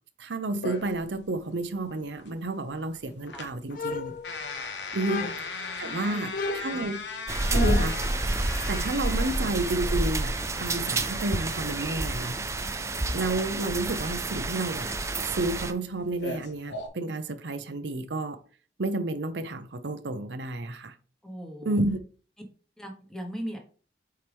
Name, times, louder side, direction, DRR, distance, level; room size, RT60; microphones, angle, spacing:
voice 1, 0.2-4.1 4.9-5.3 5.8-7.0 7.4-8.0 8.7-12.4 13.1-14.9 15.2-18.4 18.8-20.9 21.6-22.0, right 2 dB, 85° right, 0.7 m, -31 dB
sound 1, 0.6-16.9, left 3 dB, 85° left, 1.2 m, -40 dB
sound 2, 3.7-4.6 5.0-5.6 6.3-8.1, left 4 dB, 50° left, 0.4 m, -33 dB
voice 2, 5.8-6.3 6.7-6.9 8.9-9.1 21.2-21.8 22.8-23.6, equal, 5° left, 1.2 m, -39 dB
sound 3, 7.3-15.7, right 2 dB, 15° right, 0.5 m, -29 dB
7.7 x 4.6 x 3.5 m
head